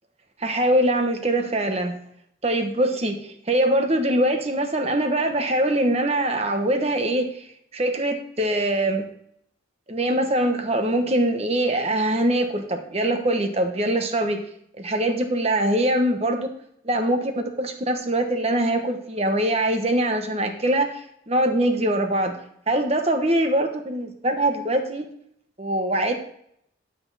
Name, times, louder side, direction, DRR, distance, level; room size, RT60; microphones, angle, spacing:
voice 1, 0.4-1.9 2.4-7.5 7.7-9.1 9.9-14.4 14.8-16.5 16.8-21.0 21.3-22.4 22.7-25.0 25.6-26.1, right 1 dB, 30° right, 5 dB, 1.1 m, -23 dB
11.5 x 6.1 x 4.1 m, 0.71 s
head